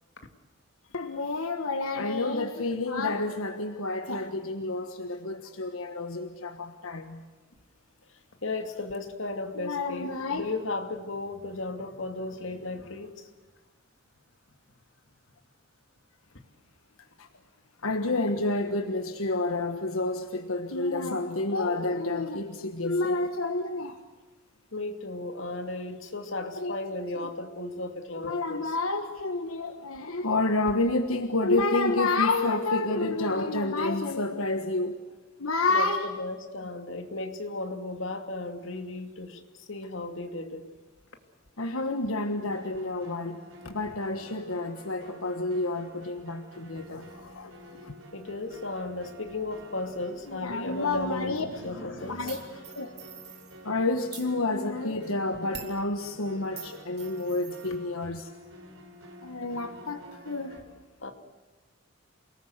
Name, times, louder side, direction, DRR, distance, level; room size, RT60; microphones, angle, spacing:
voice 1, 0.9-7.2 9.6-10.4 17.2-17.3 17.8-24.0 26.6-26.7 27.2-27.3 28.2-35.0 35.4-36.1 41.6-47.9 50.3-51.4 52.1-52.4 52.7-52.9 53.6-58.3 59.2-60.6, left 2 dB, 90° left, 7 dB, 1.5 m, -29 dB
voice 2, 8.1-13.3 24.7-28.7 35.7-40.7 47.6-52.5 57.2-57.3 57.7-58.1 61.0-61.1, left 2 dB, 65° left, 6 dB, 2.5 m, -35 dB
sound 1, 42.3-60.6, equal, 80° right, 4.5 m, -49 dB
sound 2, 52.3-53.6 54.0-54.3 55.5-55.8 56.6-57.8, right 9 dB, 55° right, 3.6 m, -45 dB
28.0 x 19.0 x 8.0 m, 1.3 s
head